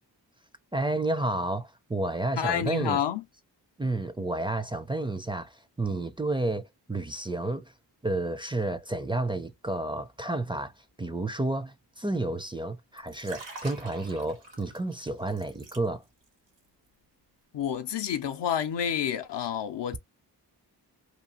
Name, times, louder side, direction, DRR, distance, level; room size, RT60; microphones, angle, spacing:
voice 1, 0.7-3.0 3.8-7.7 8.0-10.7 11.0-16.0, right 2 dB, 10° right, 0.4 m, -31 dB
voice 2, 2.4-3.2 17.5-20.0, left 9 dB, 75° left, 0.6 m, -29 dB
Liquid, 12.9-16.3 16.6-16.9, right 3 dB, 85° right, 1.2 m, -46 dB
2.9 x 2.4 x 2.8 m
cardioid pair, 45°, 43 cm